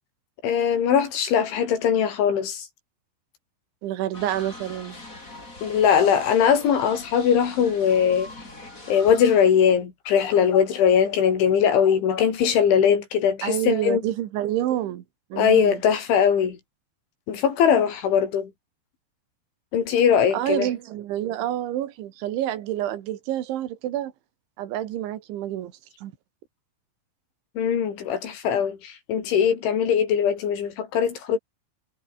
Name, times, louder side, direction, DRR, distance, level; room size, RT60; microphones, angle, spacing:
voice 1, 0.4-2.7 5.6-8.3 8.9-14.0 15.4-16.6 17.3-18.5 19.7-20.7 27.6-31.4, left 8 dB, 90° left, 6.3 m, -21 dB
voice 2, 3.8-5.0 13.4-15.0 15.3-15.8 20.3-24.1 24.6-25.7 26.0-26.1, right 12 dB, 85° right, 4.2 m, -28 dB
sound 1, 4.1-9.5, left 2 dB, 15° left, 5.9 m, -42 dB
omnidirectional pair, 5.2 m